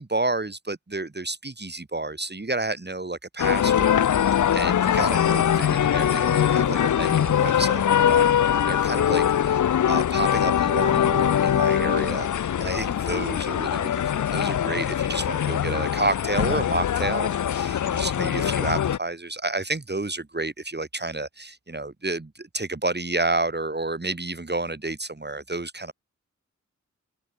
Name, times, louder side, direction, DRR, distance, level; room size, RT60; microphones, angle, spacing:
voice 1, 0.0-25.9, right 2 dB, 35° right, 4.1 m, -30 dB
sound 1, 3.4-19.0, left 9 dB, 90° left, 0.6 m, -22 dB
open air
cardioid pair, 55°, 29 cm